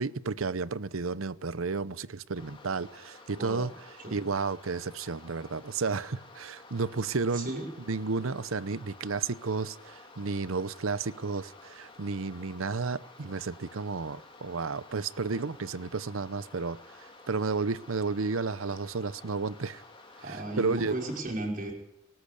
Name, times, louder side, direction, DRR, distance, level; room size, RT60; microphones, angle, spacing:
voice 1, 0.0-3.7 4.1-7.5 7.9-19.8 20.2-20.9, right 4 dB, 80° right, 17 dB, 0.8 m, -32 dB
sound 1, 2.4-21.2, left 2 dB, 25° left, 3.2 m, -52 dB
voice 2, 3.4-3.7 4.0-4.2 7.3-7.7 20.2-21.7, right 1 dB, 40° right, 1 dB, 5.6 m, -35 dB
24.5 x 13.5 x 8.5 m, 0.87 s
head